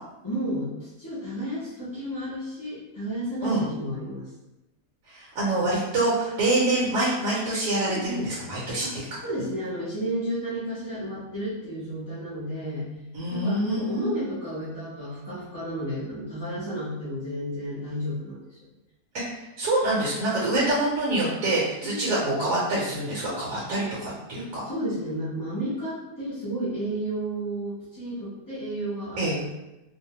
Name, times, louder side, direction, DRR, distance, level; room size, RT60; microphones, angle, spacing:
voice 1, 0.2-4.3 7.9-8.3 8.8-8.9 9.2-13.0 13.3-18.4 21.8-22.3 24.3-29.4, right 1 dB, 25° left, -13 dB, 0.4 m, -32 dB
voice 2, 5.1-9.0 13.1-14.2 19.3-24.6 29.2-29.3, right 2 dB, 70° right, -6 dB, 1.1 m, -26 dB
2.7 x 2.1 x 2.8 m, 0.95 s
omnidirectional pair, 1.7 m